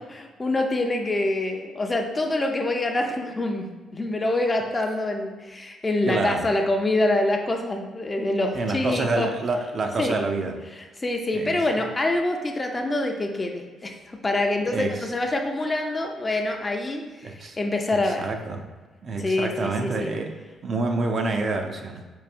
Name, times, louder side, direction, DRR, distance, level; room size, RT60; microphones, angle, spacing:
voice 1, 0.1-9.3 10.0-10.1 11.0-18.2 19.2-20.1, left 2 dB, 25° left, 3 dB, 0.4 m, -26 dB
voice 2, 6.1-6.5 8.5-10.6 11.3-11.6 14.6-15.1 17.2-17.6 17.9-18.7 19.0-20.3 20.6-22.0, right 3 dB, 50° right, 4 dB, 0.4 m, -27 dB
4.6 x 2.6 x 2.5 m, 1.3 s
cardioid pair, 90°, 0 cm